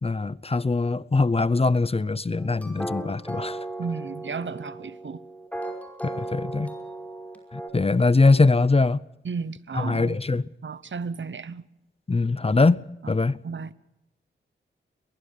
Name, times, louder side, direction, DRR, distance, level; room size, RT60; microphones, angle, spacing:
voice 1, 0.0-3.6 6.0-6.7 7.5-9.0 9.7-10.4 12.1-13.4, left 3 dB, 30° left, 0.6 m, -22 dB
sound 1, 2.4-7.7, right 1 dB, 5° left, 5.5 m, -36 dB
voice 2, 3.8-5.2 9.2-10.2 10.6-11.6 13.4-13.7, right 5 dB, 65° right, 1.0 m, -33 dB
22.5 x 21.5 x 5.4 m
cardioid pair, 55°, 21 cm